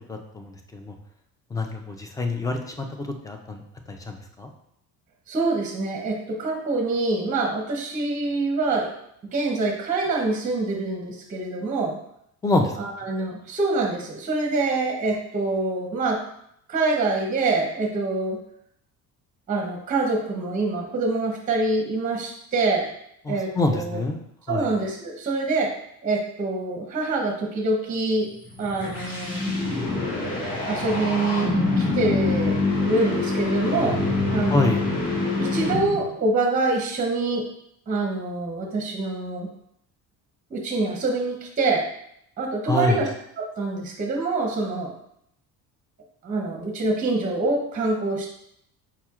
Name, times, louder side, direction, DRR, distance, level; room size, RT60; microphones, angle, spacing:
voice 1, 0.1-0.9 1.5-3.6 3.9-4.5 12.4-12.8 23.3-24.2 24.5-24.7 34.5-34.8 42.7-43.0, left 2 dB, 10° left, 4 dB, 0.4 m, -26 dB
voice 2, 5.3-8.9 9.3-12.0 12.8-16.2 16.7-18.4 19.5-22.8 23.3-24.0 24.5-25.7 26.0-28.3 28.6-29.5 30.7-34.0 34.3-34.8 35.4-37.4 37.9-39.5 40.5-41.8 42.4-43.1 43.4-44.9 46.2-48.3, right 3 dB, 25° right, 0 dB, 0.7 m, -25 dB
sound 1, 28.4-36.2, left 2 dB, 35° left, 1.7 m, -25 dB
4.9 x 4.3 x 2.4 m, 0.73 s
cardioid pair, 140°, 34 cm